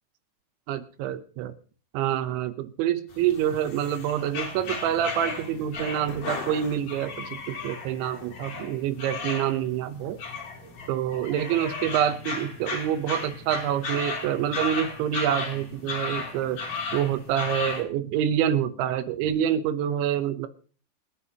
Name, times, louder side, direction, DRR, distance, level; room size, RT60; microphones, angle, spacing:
voice 1, 0.7-1.5 1.9-10.2 10.9-16.6 16.9-20.5, right 10 dB, 80° right, 11 dB, 3.1 m, -27 dB
sound 1, 3.1-17.8, left 4 dB, 45° left, 3.3 m, -35 dB
sound 2, 4.5-19.3, equal, 50° right, 2.8 m, -52 dB
27.0 x 9.7 x 2.9 m, 0.42 s
omnidirectional pair, 5.4 m